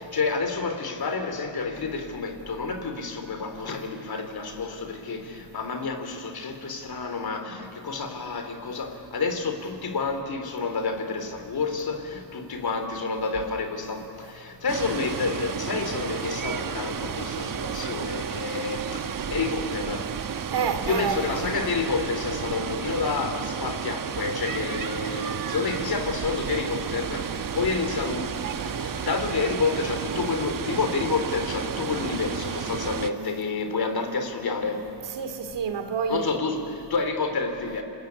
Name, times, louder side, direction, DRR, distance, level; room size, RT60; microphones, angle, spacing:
voice 1, 0.0-20.1 20.8-28.3 28.6-34.9 36.1-37.8, left 4 dB, 50° left, 3.5 m, -29 dB
Water, 14.7-33.1, right 7 dB, 45° right, 1.2 m, -32 dB
voice 2, 20.5-21.5 35.2-36.2, right 6 dB, 65° right, 2.6 m, -28 dB
30.0 x 21.0 x 8.6 m
cardioid pair, 75°, 46 cm